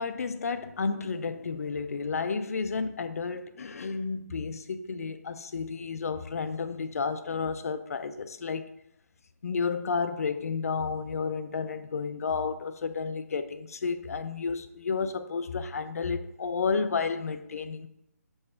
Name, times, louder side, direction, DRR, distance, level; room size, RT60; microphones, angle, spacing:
voice 1, 0.0-8.7 9.4-17.9, left 5 dB, 60° left, 0.5 m, -31 dB
5.5 x 3.5 x 5.7 m
hypercardioid pair, 160°, 9 cm